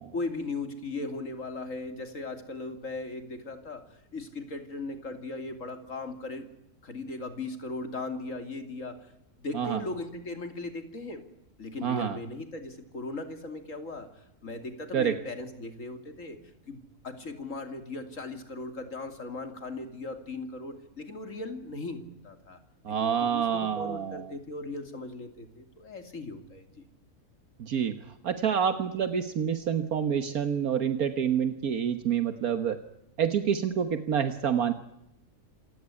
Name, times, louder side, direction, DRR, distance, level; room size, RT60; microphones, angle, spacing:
voice 1, 0.1-3.8 4.1-6.5 6.8-9.1 9.4-11.2 11.6-16.4 16.7-22.6 22.9-26.7, left 2 dB, 55° left, 7 dB, 3.2 m, -38 dB
voice 2, 11.8-12.2 14.9-15.2 22.9-24.3 27.6-27.9 28.2-32.8 33.2-34.7, right 8 dB, 70° right, 9 dB, 1.7 m, -27 dB
27.5 x 17.0 x 9.8 m, 0.85 s
omnidirectional pair, 1.6 m